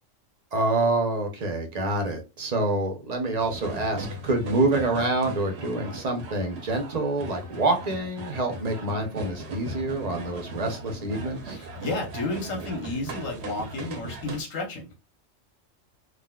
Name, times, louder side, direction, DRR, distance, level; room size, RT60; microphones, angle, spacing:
voice 1, 0.5-11.6, right 2 dB, 40° right, 3 dB, 0.7 m, -27 dB
sound 1, 3.4-14.4, right 2 dB, 65° right, 1.0 m, -38 dB
voice 2, 11.5-15.0, left 2 dB, 90° left, 2 dB, 1.4 m, -32 dB
3.8 x 2.5 x 2.2 m, 0.27 s
omnidirectional pair, 1.3 m